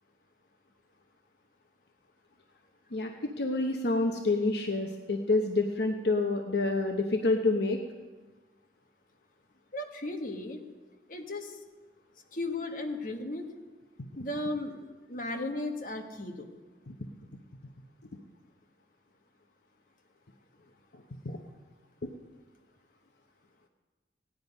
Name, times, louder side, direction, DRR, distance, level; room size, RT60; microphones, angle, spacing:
voice 1, 2.9-7.8 16.9-17.0 20.9-21.4 22.0-22.1, left 2 dB, 65° left, 4 dB, 0.9 m, -28 dB
voice 2, 9.7-10.6 11.1-11.6 12.3-13.5 14.2-16.5, left 2 dB, 50° left, 3 dB, 1.4 m, -35 dB
17.0 x 10.5 x 5.3 m, 1.3 s
head